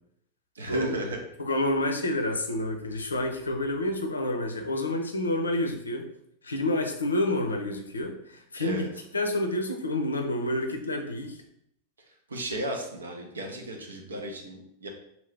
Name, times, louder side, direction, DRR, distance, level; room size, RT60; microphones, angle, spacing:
voice 1, 0.5-1.2 8.6-8.9 12.3-14.9, right 1 dB, 70° right, 2 dB, 0.7 m, -35 dB
voice 2, 1.4-6.1 6.4-8.9 9.1-11.4, left 1 dB, 75° left, 4 dB, 0.5 m, -28 dB
2.8 x 2.7 x 3.3 m, 0.75 s
figure-of-eight pair, 90°, 0 cm